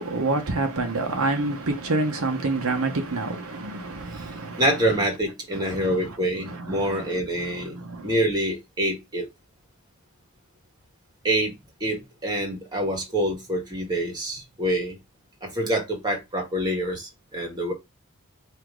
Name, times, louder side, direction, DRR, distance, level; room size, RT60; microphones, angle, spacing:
voice 1, 0.0-4.7 5.5-6.0 6.4-7.1 7.4-8.1, right 2 dB, 75° right, 0.9 m, -28 dB
voice 2, 4.6-7.8 8.0-9.3 11.2-11.5 11.8-15.0 15.4-17.7, right 1 dB, 20° right, 1.6 m, -26 dB
4.9 x 2.9 x 3.7 m
head